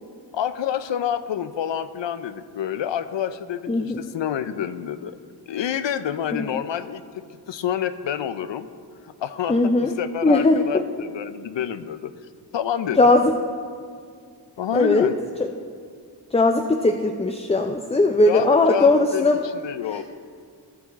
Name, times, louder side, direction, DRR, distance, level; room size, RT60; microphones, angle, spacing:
voice 1, 0.3-5.2 5.5-7.0 7.5-8.7 9.0-12.1 12.5-13.1 14.6-15.1 18.3-20.0, left 9 dB, 90° left, 12 dB, 0.5 m, -28 dB
voice 2, 3.7-4.0 6.3-6.4 9.5-9.9 10.2-10.6 13.0-13.3 14.7-15.1 16.3-19.4, left 2 dB, 15° left, 4 dB, 0.4 m, -18 dB
14.5 x 6.0 x 4.0 m, 2.2 s
wide cardioid pair, 65°, 42 cm